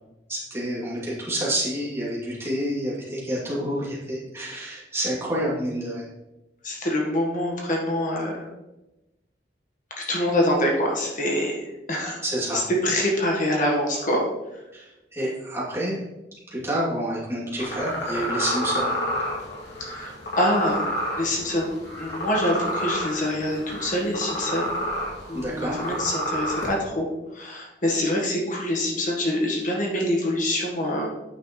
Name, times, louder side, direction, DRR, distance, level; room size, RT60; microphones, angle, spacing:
voice 1, 0.3-6.1 10.1-10.2 12.2-12.6 14.7-16.0 16.5-18.9 25.3-25.8, right 1 dB, 15° right, -7 dB, 2.8 m, -28 dB
voice 2, 6.6-8.5 10.1-12.2 12.8-14.2 19.8-20.9 21.2-24.7 25.3-27.1 27.3-31.1, left 1 dB, 50° left, -1 dB, 1.4 m, -25 dB
sound 1, 17.6-26.7, equal, 80° left, 2.6 m, -30 dB
9.0 x 6.1 x 3.2 m, 0.99 s
head